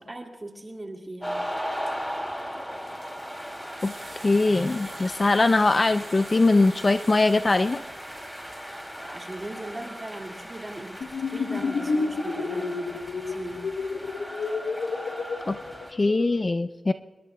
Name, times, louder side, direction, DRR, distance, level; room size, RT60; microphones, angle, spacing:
voice 1, 0.0-1.4 8.7-13.6, right 1 dB, 20° right, 2 dB, 2.1 m, -39 dB
sound 1, 1.2-15.9, equal, 5° left, 2.6 m, -37 dB
sound 2, 3.8-8.9, right 3 dB, 45° right, 3.3 m, -48 dB
voice 2, 4.2-7.8 15.5-15.6 15.9-16.9, left 2 dB, 25° left, 10 dB, 0.4 m, -21 dB
sound 3, 11.0-16.4, left 4 dB, 75° left, 0.9 m, -30 dB
26.0 x 21.5 x 2.2 m, 1.4 s
wide cardioid pair, 140°, 0 cm